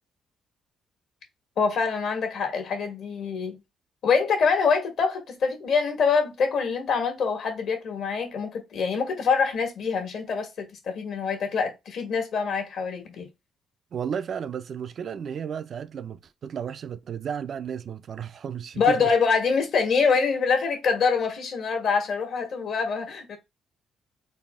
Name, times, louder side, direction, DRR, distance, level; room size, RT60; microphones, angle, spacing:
voice 1, 1.6-3.6 4.0-13.3 18.7-23.4, left 5 dB, 70° left, 1.4 m, -25 dB
voice 2, 13.9-19.1, right 7 dB, 55° right, 0.4 m, -33 dB
4.0 x 2.1 x 3.5 m
cardioid pair, 90°, 0 cm